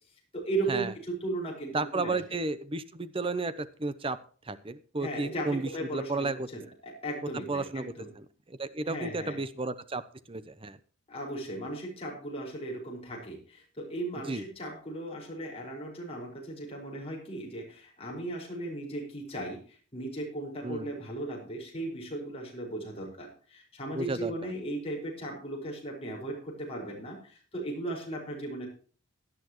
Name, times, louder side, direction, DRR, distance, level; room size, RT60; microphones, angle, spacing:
voice 1, 0.3-2.4 5.0-8.1 8.8-9.4 11.1-28.7, right 2 dB, 30° left, -1 dB, 5.2 m, -37 dB
voice 2, 1.7-4.2 4.5-6.5 7.5-7.9 8.5-10.0 10.3-10.8 14.3-14.4 20.6-20.9 23.9-24.5, right 3 dB, 25° right, 13 dB, 0.8 m, -33 dB
17.0 x 11.0 x 3.1 m, 0.40 s
head